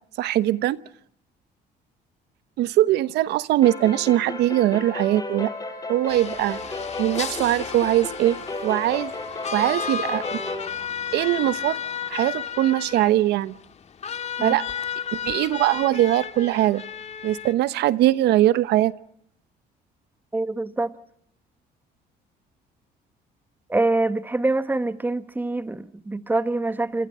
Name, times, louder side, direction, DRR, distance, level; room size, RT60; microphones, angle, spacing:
voice 1, 0.2-0.8 2.6-5.5 5.9-6.6 7.0-8.4 8.6-9.1 9.5-10.4 11.1-11.8 12.1-13.5 14.4-14.7 15.2-16.8 17.2-18.9, right 14 dB, 80° right, 1.1 m, -21 dB
sound 1, 3.6-10.7, left 3 dB, 20° left, 5.4 m, -34 dB
sound 2, 6.1-17.5, left 7 dB, 40° left, 2.1 m, -33 dB
voice 2, 20.3-20.9 23.7-27.1, right 2 dB, 10° right, 1.4 m, -25 dB
28.0 x 27.0 x 5.6 m
cardioid pair, 110°, 17 cm